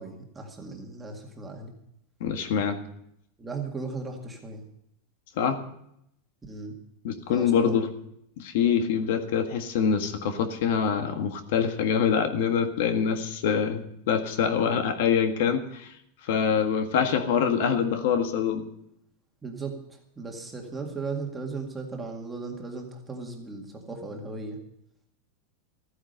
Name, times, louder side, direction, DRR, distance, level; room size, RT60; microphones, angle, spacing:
voice 1, 0.0-1.7 3.4-4.6 6.4-6.7 7.3-7.9 19.4-19.7 20.2-24.6, right 4 dB, 10° right, 1 dB, 2.0 m, -37 dB
voice 2, 2.2-2.8 5.4-5.6 7.0-7.9 8.4-15.9 16.3-18.6, left 7 dB, 60° left, 7 dB, 1.7 m, -25 dB
14.5 x 9.8 x 6.7 m, 0.74 s
supercardioid pair, 170°, 0 cm